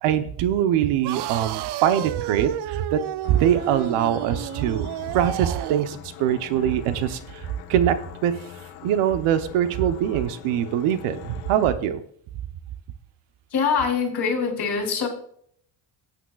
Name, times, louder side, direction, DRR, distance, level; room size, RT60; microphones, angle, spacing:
voice 1, 0.0-3.0 3.3-4.9 5.1-7.4 7.7-8.3 8.8-12.0, right 10 dB, 80° right, 11 dB, 1.0 m, -23 dB
sound 1, 1.0-6.0, right 13 dB, 55° right, 0.5 m, -32 dB
sound 2, 3.2-11.7, left 10 dB, 85° left, 1.2 m, -42 dB
voice 2, 13.5-15.1, left 5 dB, 50° left, 2 dB, 3.1 m, -23 dB
15.5 x 9.0 x 2.4 m, 0.64 s
cardioid pair, 105°, 49 cm